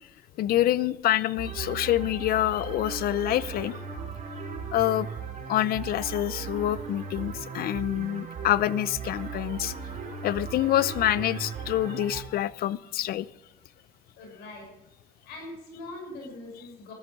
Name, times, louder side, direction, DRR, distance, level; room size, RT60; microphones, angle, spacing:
voice 1, 0.4-3.7 4.7-5.1 5.5-9.7 10.2-13.3, left 13 dB, 65° left, 18 dB, 0.6 m, -26 dB
sound 1, 1.4-12.2, right 6 dB, 45° right, 4.9 m, -37 dB
voice 2, 14.2-14.7 15.2-16.9, left 2 dB, 85° left, 0 dB, 6.8 m, -42 dB
15.0 x 13.0 x 5.3 m, 0.95 s
cardioid pair, 110°, 17 cm